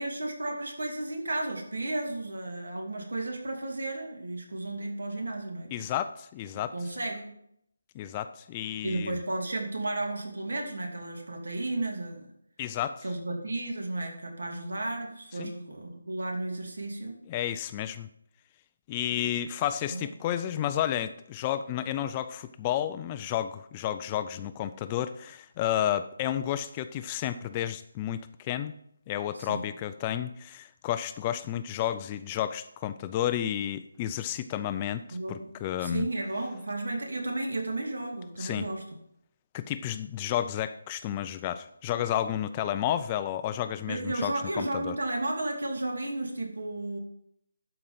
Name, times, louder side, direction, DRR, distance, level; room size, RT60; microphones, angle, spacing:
voice 1, 0.0-5.8 6.5-7.4 8.8-12.3 13.0-17.2 19.9-20.0 29.4-29.6 35.1-35.5 35.8-38.8 43.9-47.0, right 2 dB, 80° right, 2 dB, 2.7 m, -33 dB
voice 2, 5.7-6.7 7.9-9.2 12.6-13.0 15.4-15.5 17.3-18.1 18.9-28.7 29.1-36.1 38.4-38.7 39.5-45.0, left 11 dB, 15° left, 12 dB, 0.3 m, -31 dB
12.5 x 5.1 x 5.7 m, 0.73 s
figure-of-eight pair, 170°, 0 cm